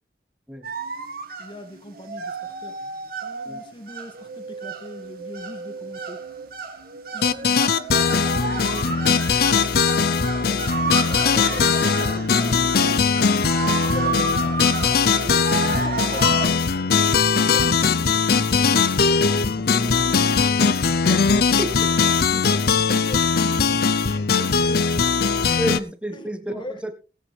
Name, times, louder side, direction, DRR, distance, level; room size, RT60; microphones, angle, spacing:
sound 1, 0.6-16.5, right 4 dB, 55° right, 1.9 m, -31 dB
voice 1, 1.4-6.2 7.1-9.7 11.0-13.0 13.8-14.6 15.6-16.7 17.2-18.8 19.3-20.9 22.3-25.1 26.1-26.8, equal, 25° left, 1.8 m, -40 dB
sound 2, 7.2-25.8, left 5 dB, 55° left, 0.7 m, -20 dB
voice 2, 21.6-21.9 25.6-26.9, equal, 5° right, 1.4 m, -30 dB
19.5 x 8.6 x 3.4 m
head